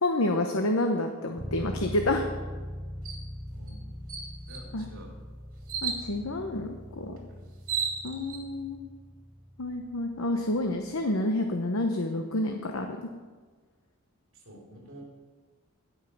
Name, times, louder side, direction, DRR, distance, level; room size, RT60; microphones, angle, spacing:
voice 1, 0.0-2.3 4.7-4.9 5.8-7.2 8.0-8.9 9.6-13.0, left 1 dB, 70° left, 4 dB, 0.9 m, -29 dB
sound 1, 1.4-11.1, equal, 5° right, 0.5 m, -42 dB
sound 2, 3.1-3.2 3.7-3.8 4.1-4.7 5.7-6.1 7.2-7.3 7.5-8.4, right 6 dB, 80° right, 2.5 m, -33 dB
voice 2, 3.5-4.1 4.5-5.1 7.3-7.5 14.3-15.0, right 1 dB, 60° right, -1 dB, 3.6 m, -49 dB
16.5 x 5.7 x 7.1 m, 1.4 s
head